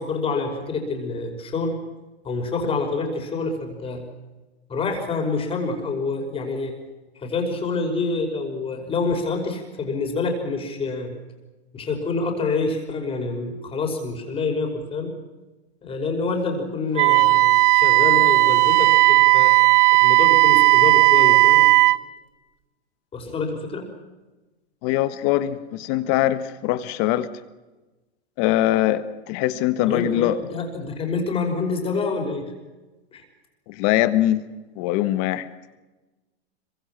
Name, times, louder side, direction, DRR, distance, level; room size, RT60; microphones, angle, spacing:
voice 1, 0.0-1.8 2.2-4.0 4.7-6.8 7.2-11.1 11.7-15.2 15.8-19.6 20.0-21.7 23.1-23.9 29.9-32.5 33.1-33.2, left 3 dB, 15° left, 3 dB, 5.5 m, -27 dB
Wind instrument woodwind instrument, 17.0-22.0, right 22 dB, 30° right, 0.7 m, -15 dB
voice 2, 24.8-27.3 28.4-30.4 33.7-34.4 34.8-35.5, left 14 dB, 35° left, 12 dB, 1.6 m, -22 dB
26.0 x 24.0 x 6.1 m, 1.1 s
hypercardioid pair, 145°, 32 cm